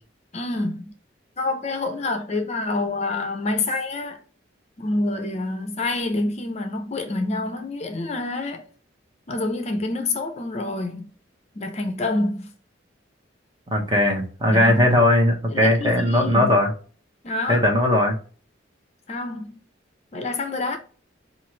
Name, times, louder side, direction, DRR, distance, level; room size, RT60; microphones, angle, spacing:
voice 1, 0.3-0.9 1.4-4.2 4.8-8.6 9.3-11.1 11.5-12.5 14.5-14.9 15.5-16.5 17.2-17.6 19.1-19.6 20.1-20.8, left 2 dB, 35° left, 0.5 m, -27 dB
voice 2, 13.7-16.7 17.5-18.2, left 1 dB, 25° right, 0.9 m, -19 dB
4.4 x 2.5 x 3.0 m
head